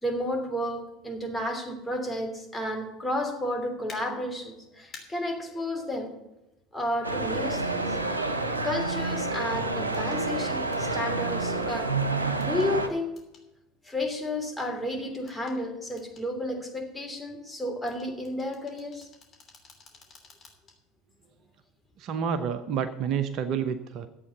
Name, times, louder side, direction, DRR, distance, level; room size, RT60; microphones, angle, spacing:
voice 1, 0.0-6.1 6.7-8.0 8.6-11.9 12.4-13.1 13.8-19.1, left 1 dB, 10° left, 1 dB, 3.0 m, -32 dB
sound 1, 3.9-4.0 4.9-5.0 7.0-7.1 9.9-10.2 10.7-11.0 12.4-12.7 13.2-13.5 15.3-15.6 16.0-16.3 17.9-20.8 21.2-21.3, left 4 dB, 35° left, 3.1 m, -50 dB
sound 2, 7.0-12.9, right 3 dB, 85° right, 1.1 m, -29 dB
voice 2, 22.0-24.1, right 7 dB, 50° right, 10 dB, 0.8 m, -29 dB
11.0 x 8.2 x 6.7 m, 0.95 s
figure-of-eight pair, 70°, 0 cm